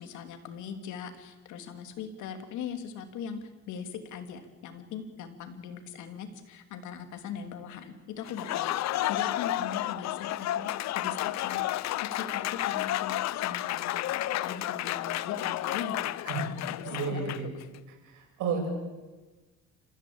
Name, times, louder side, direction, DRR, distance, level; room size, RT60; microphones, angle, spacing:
voice 1, 0.0-16.2 16.7-17.7, left 7 dB, 80° left, 7 dB, 3.1 m, -40 dB
Applause, 8.2-17.6, left 14 dB, 65° left, 0.8 m, -31 dB
voice 2, 16.9-17.5 18.1-18.7, right 5 dB, 85° right, 2 dB, 7.7 m, -32 dB
29.0 x 15.5 x 8.8 m, 1.2 s
cardioid pair, 125°, 29 cm